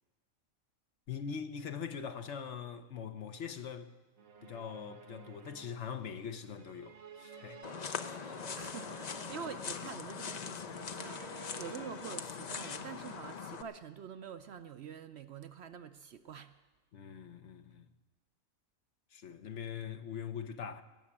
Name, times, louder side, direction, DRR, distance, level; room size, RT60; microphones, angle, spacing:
voice 1, 1.1-3.9 4.4-8.3 16.9-17.9 19.1-20.8, left 7 dB, 60° left, 1.1 m, -42 dB
sound 1, 4.2-12.1, right 5 dB, 80° right, 1.5 m, -53 dB
sound 2, 7.6-13.6, left 6 dB, 45° left, 0.5 m, -41 dB
voice 2, 8.5-16.6, right 8 dB, 60° right, 0.8 m, -46 dB
18.0 x 7.1 x 8.5 m
omnidirectional pair, 1.4 m